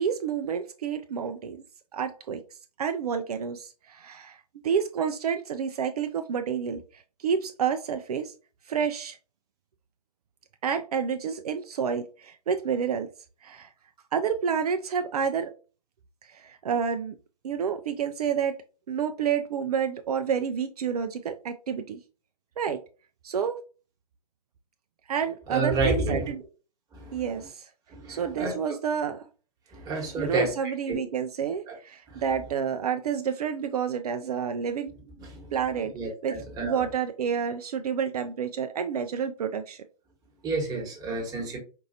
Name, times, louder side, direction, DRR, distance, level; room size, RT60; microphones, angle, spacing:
voice 1, 0.0-1.6 1.9-2.4 2.8-8.3 8.7-9.2 10.6-13.1 13.4-13.7 14.1-15.5 16.2-17.1 17.4-18.5 18.9-22.0 22.6-22.8 23.2-23.6 25.1-26.4 27.1-27.7 28.1-29.3 30.2-34.9 35.5-35.9 36.2-36.3 36.6-39.8, right 7 dB, 65° right, 7 dB, 0.5 m, -29 dB
voice 2, 25.5-26.3 26.9-27.3 27.9-28.5 29.7-31.0 31.7-31.8 32.1-32.2 35.2-35.5 35.9-36.8 40.4-41.6, right 3 dB, 20° right, -1 dB, 1.3 m, -30 dB
4.6 x 2.5 x 2.7 m, 0.35 s
hypercardioid pair, 130°, 21 cm